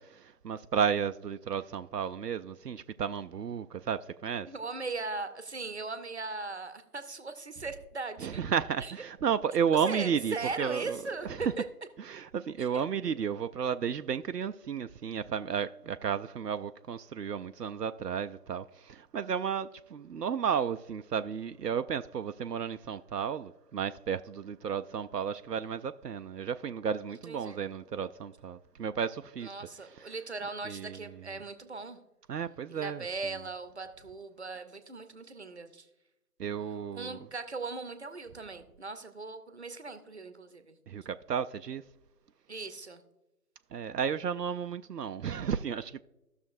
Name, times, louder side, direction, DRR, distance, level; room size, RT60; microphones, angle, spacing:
voice 1, 0.0-4.5 8.2-11.0 11.3-11.4 12.0-29.5 29.9-30.1 30.6-31.1 32.3-33.1 36.4-37.2 40.9-41.8 43.7-46.0, right 7 dB, 85° right, 0.5 m, -33 dB
voice 2, 4.5-8.4 8.8-8.9 9.8-11.3 11.6-11.7 12.6-12.8 27.3-27.6 29.4-32.0 32.7-35.9 36.9-40.8 42.5-43.0, right 3 dB, 45° right, 0.8 m, -39 dB
15.0 x 6.4 x 2.6 m
figure-of-eight pair, 160°, 47 cm